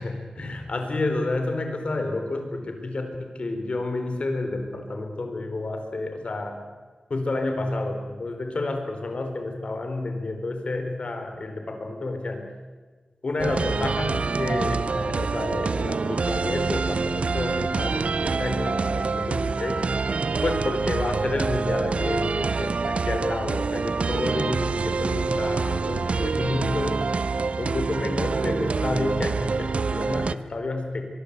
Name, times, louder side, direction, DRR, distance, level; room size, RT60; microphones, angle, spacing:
voice 1, 0.0-6.6 7.1-12.4 13.2-19.8 20.4-27.0 27.6-31.0, left 2 dB, 55° left, 5 dB, 4.3 m, -30 dB
sound 1, 13.4-30.3, right 4 dB, 60° right, 0.7 m, -26 dB
23.0 x 23.0 x 8.2 m, 1.4 s
wide cardioid pair, 105°, 2 cm